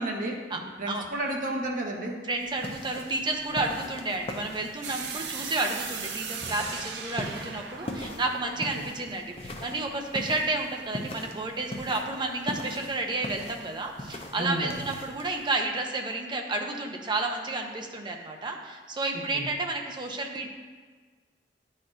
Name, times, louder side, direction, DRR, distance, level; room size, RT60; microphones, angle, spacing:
voice 1, 0.0-2.1 8.7-8.8 14.4-14.8 19.3-19.4, right 1 dB, 50° right, -1 dB, 1.0 m, -32 dB
voice 2, 2.3-20.5, right 2 dB, 25° right, 2 dB, 0.7 m, -31 dB
sound 1, 2.4-15.5, left 1 dB, 35° left, 0.6 m, -41 dB
sound 2, 4.8-9.7, right 6 dB, 80° right, 0.5 m, -38 dB
10.5 x 4.3 x 2.5 m, 1.5 s
head